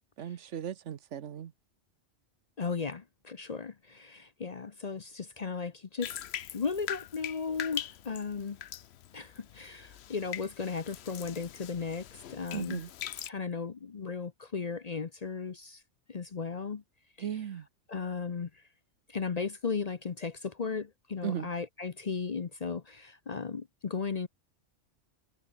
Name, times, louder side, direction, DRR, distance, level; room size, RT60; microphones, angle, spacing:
voice 1, 0.2-1.5 12.5-12.9 17.2-17.7 21.2-21.5, right 9 dB, 75° right, 1.2 m, -36 dB
voice 2, 2.6-6.2 6.5-8.6 9.1-12.8 13.3-15.8 16.1-16.8 17.9-18.5 19.1-24.3, left 5 dB, 40° left, 0.7 m, -36 dB
Bathtub (filling or washing), 6.0-13.3, left 11 dB, 65° left, 0.9 m, -42 dB
omnidirectional pair, 1.2 m